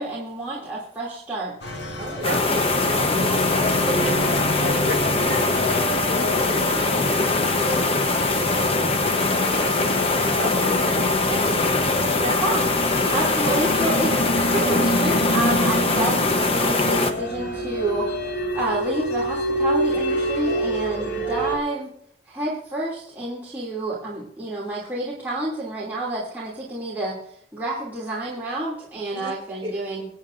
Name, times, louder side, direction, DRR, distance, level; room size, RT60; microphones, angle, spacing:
voice 1, 0.0-1.5 12.4-12.7 13.1-14.2 14.5-18.1 18.5-21.9 22.3-27.2 27.5-30.1, right 2 dB, 10° right, -9 dB, 2.8 m, -29 dB
sound 1, 1.6-21.6, equal, 85° left, 2.1 m, -28 dB
voice 2, 2.0-12.6 29.1-29.3 29.6-29.7, equal, 30° right, -3 dB, 5.9 m, -34 dB
sound 2, 2.2-17.1, left 3 dB, 35° left, 1.0 m, -22 dB
25.5 x 8.5 x 2.7 m, 0.69 s
head